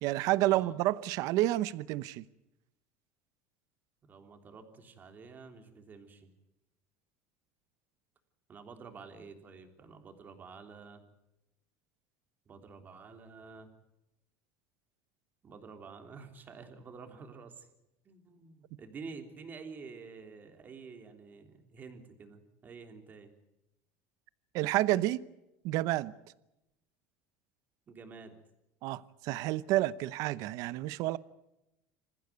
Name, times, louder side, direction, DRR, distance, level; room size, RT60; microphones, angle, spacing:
voice 1, 0.0-2.2 24.5-25.2 25.6-26.1 28.8-31.2, right 16 dB, 60° right, 0.8 m, -29 dB
voice 2, 4.0-6.3 8.5-11.0 12.5-13.7 15.4-17.7 18.0-23.3 27.9-28.3, right 5 dB, 25° right, 3.4 m, -49 dB
27.5 x 15.0 x 9.4 m
cardioid pair, 145°, 7 cm